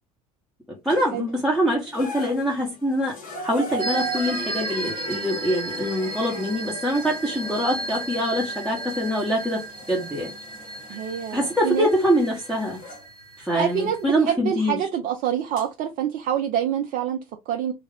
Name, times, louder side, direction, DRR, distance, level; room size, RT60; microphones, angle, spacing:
voice 1, 0.8-9.6 9.9-10.3 11.3-12.8 13.4-14.9, equal, ahead, 1.2 m, -24 dB
sound 1, 0.9-1.4 1.9-13.1 14.2-14.3 15.6-15.7, right 2 dB, 45° left, 1.4 m, -38 dB
sound 2, 3.8-14.1, right 2 dB, 80° right, 0.7 m, -35 dB
voice 2, 10.9-11.9 13.5-17.7, right 9 dB, 45° right, 0.6 m, -26 dB
3.2 x 2.4 x 3.4 m
figure-of-eight pair, 65°, 19 cm